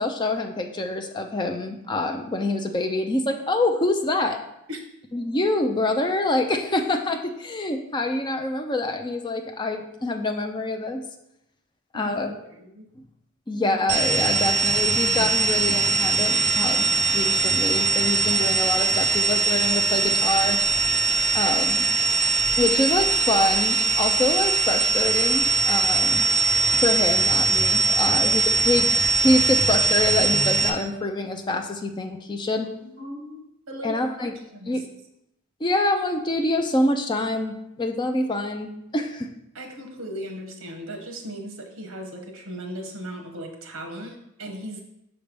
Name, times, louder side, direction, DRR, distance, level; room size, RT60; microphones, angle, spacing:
voice 1, 0.0-4.4 5.1-11.0 11.9-12.3 13.5-20.6 21.3-21.8 22.6-26.3 26.8-28.9 29.2-32.7 33.8-34.3 34.7-34.8 35.6-39.3, left 2 dB, 20° left, 4 dB, 0.5 m, -25 dB
voice 2, 12.0-12.9 21.5-22.3 28.0-28.5 32.8-34.0 34.5-34.9 39.5-44.8, equal, 65° right, 3 dB, 1.1 m, -38 dB
sound 1, 13.9-30.7, right 4 dB, 35° right, 0.6 m, -21 dB
6.1 x 3.3 x 5.1 m, 0.83 s
head